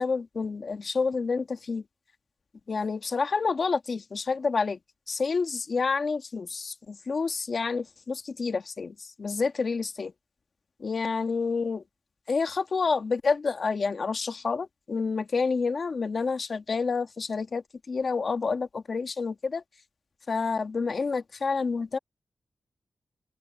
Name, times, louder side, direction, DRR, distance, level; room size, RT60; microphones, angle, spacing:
voice 1, 0.0-1.8 2.7-4.8 5.1-10.1 10.8-11.8 12.3-19.6 20.3-22.0, left 4 dB, 50° left, 1.8 m, -29 dB
wide cardioid pair, 125°, 0 cm